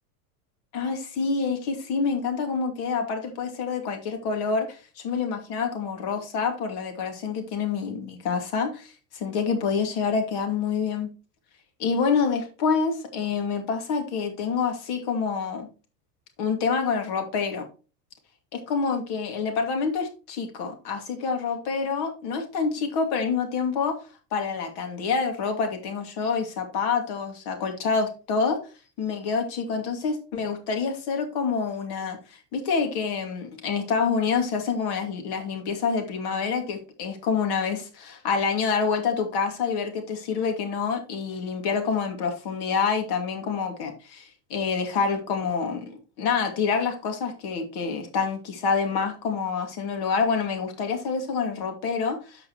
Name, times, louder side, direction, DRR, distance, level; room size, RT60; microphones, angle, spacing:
voice 1, 0.7-11.1 11.8-15.7 16.4-17.6 18.5-24.0 24.3-28.6 29.0-52.5, left 5 dB, 55° left, 5 dB, 2.6 m, -27 dB
13.5 x 4.8 x 3.2 m, 0.34 s
hypercardioid pair, 100°, 48 cm